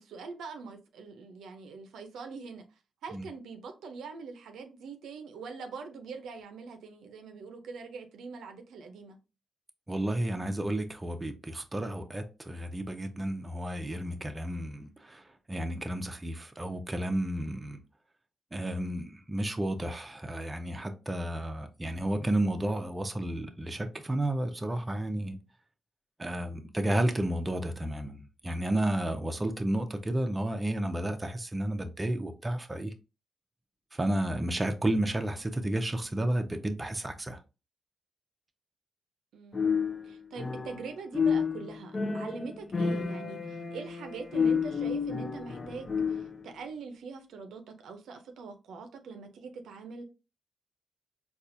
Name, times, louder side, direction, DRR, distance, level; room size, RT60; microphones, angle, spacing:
voice 1, 0.0-2.7 3.0-9.2 39.3-39.7 40.0-50.0, right 4 dB, 85° right, 0.5 m, -43 dB
voice 2, 9.9-17.8 18.5-25.4 26.2-32.9 33.9-37.4, right 1 dB, 20° right, 0.6 m, -32 dB
sound 1, 39.5-40.9 41.1-46.4, left 5 dB, 40° left, 0.5 m, -30 dB
4.1 x 2.4 x 2.6 m
cardioid pair, 70°, 0 cm